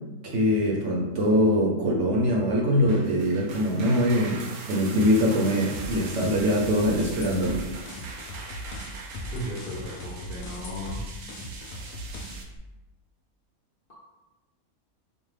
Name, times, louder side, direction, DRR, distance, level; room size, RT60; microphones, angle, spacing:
voice 1, 0.2-4.4 4.7-7.6, equal, 60° right, -1 dB, 0.9 m, -23 dB
sound 1, 2.7-12.4, right 4 dB, 80° right, 1.1 m, -42 dB
sound 2, 5.7-12.6, left 1 dB, 80° left, 1.1 m, -39 dB
voice 2, 9.3-11.0 13.9-14.0, equal, 50° left, -5 dB, 0.7 m, -36 dB
5.1 x 2.2 x 3.2 m, 1.1 s
omnidirectional pair, 1.6 m